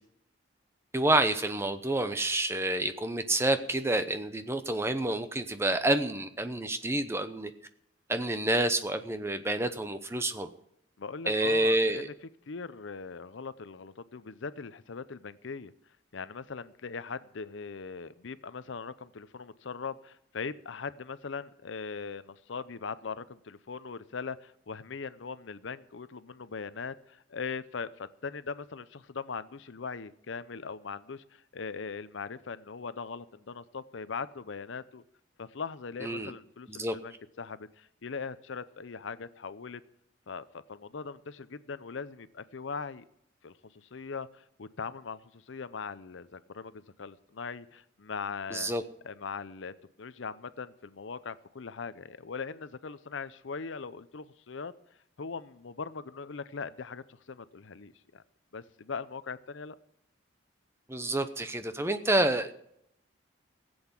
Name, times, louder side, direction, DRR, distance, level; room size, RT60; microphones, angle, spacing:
voice 1, 0.9-7.5 8.1-10.5 11.3-12.1 36.0-36.3 36.7-37.0 48.5-48.8 60.9-62.5, right 1 dB, 15° right, 9 dB, 0.8 m, -28 dB
voice 2, 11.0-12.1 12.5-15.7 16.1-35.0 35.4-39.8 40.3-43.0 43.4-48.7 49.0-54.7 55.2-58.2 58.5-59.8, left 5 dB, 70° left, 15 dB, 0.6 m, -40 dB
15.5 x 7.9 x 7.3 m, 0.73 s
head